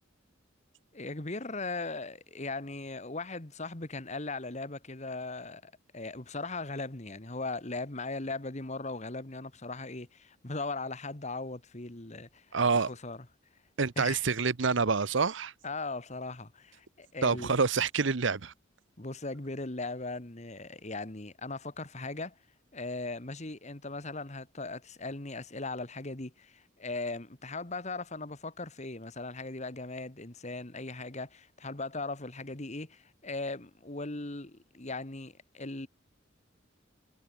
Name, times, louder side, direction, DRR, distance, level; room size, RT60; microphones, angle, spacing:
voice 1, 0.9-13.3 14.0-14.2 15.6-17.5 19.0-22.4 22.7-35.9, left 3 dB, 35° left, 1.8 m, -38 dB
voice 2, 12.5-12.9 13.8-15.5 17.2-18.5, right 4 dB, 70° right, 0.9 m, -27 dB
head